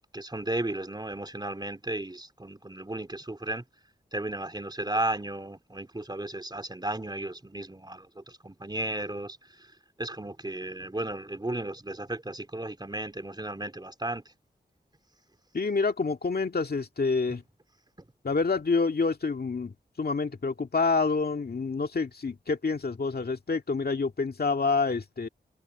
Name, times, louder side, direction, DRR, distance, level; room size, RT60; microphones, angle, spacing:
voice 1, 0.1-3.6 4.1-9.7 10.0-14.3, right 1 dB, 25° right, 3.5 m, -34 dB
voice 2, 15.5-17.4 18.2-25.3, left 4 dB, 60° left, 2.1 m, -27 dB
cardioid pair, 45°, 18 cm